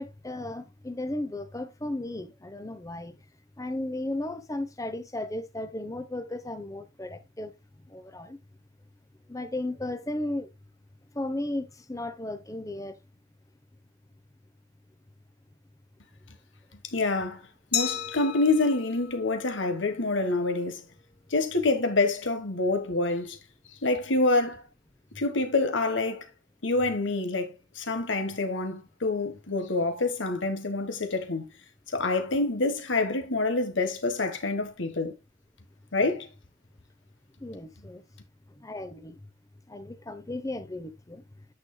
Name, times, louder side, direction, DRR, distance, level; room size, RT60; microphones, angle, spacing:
voice 1, 0.0-3.2 3.6-7.5 7.9-8.4 9.3-10.5 11.1-13.0 37.4-38.0 38.5-39.3 39.7-41.4, left 1 dB, 15° left, 0.8 m, -35 dB
voice 2, 16.9-17.4 17.7-20.8 21.3-23.4 23.8-24.6 25.1-26.3 26.6-31.5 31.9-35.1 35.9-36.3, left 2 dB, 75° left, 1.4 m, -27 dB
Glass, 17.7-20.5, left 9 dB, 55° left, 1.0 m, -35 dB
9.4 x 6.3 x 2.3 m
head